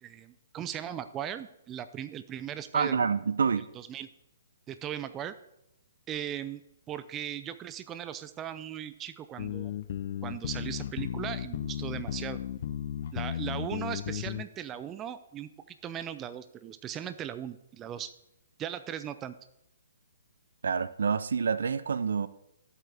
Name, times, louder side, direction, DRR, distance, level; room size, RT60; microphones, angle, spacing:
voice 1, 0.0-3.1 3.7-4.1 4.7-5.3 6.1-6.6 6.9-9.7 10.2-12.4 13.1-18.1 18.6-19.3, right 10 dB, 20° right, 0.5 m, -38 dB
voice 2, 2.7-3.7 20.6-22.3, right 6 dB, 70° right, 0.5 m, -27 dB
sound 1, 9.4-14.5, left 10 dB, 50° left, 0.5 m, -35 dB
11.5 x 8.2 x 3.5 m
figure-of-eight pair, 130°, 0 cm